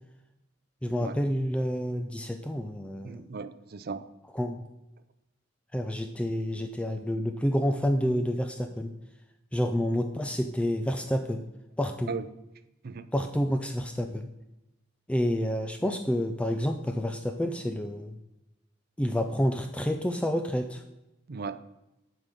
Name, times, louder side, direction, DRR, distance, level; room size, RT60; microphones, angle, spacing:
voice 1, 0.8-3.2 4.3-4.6 5.7-8.9 9.5-11.4 11.8-12.1 13.1-14.3 15.1-18.2 19.0-20.8, equal, 5° left, 6 dB, 0.4 m, -29 dB
voice 2, 3.0-4.0 12.1-12.3 12.8-13.1 21.3-21.6, right 5 dB, 50° right, 13 dB, 0.5 m, -37 dB
7.7 x 5.2 x 7.4 m, 0.95 s
head